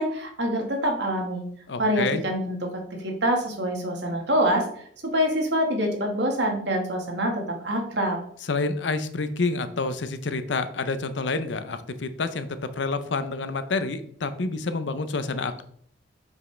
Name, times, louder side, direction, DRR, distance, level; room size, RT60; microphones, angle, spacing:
voice 1, 0.0-1.4 1.8-2.7 3.0-4.6 5.0-8.2, equal, 65° right, 2 dB, 1.6 m, -25 dB
voice 2, 1.7-2.2 8.5-12.5 12.7-15.6, left 3 dB, 75° left, 11 dB, 0.6 m, -28 dB
7.2 x 5.3 x 3.3 m, 0.64 s
head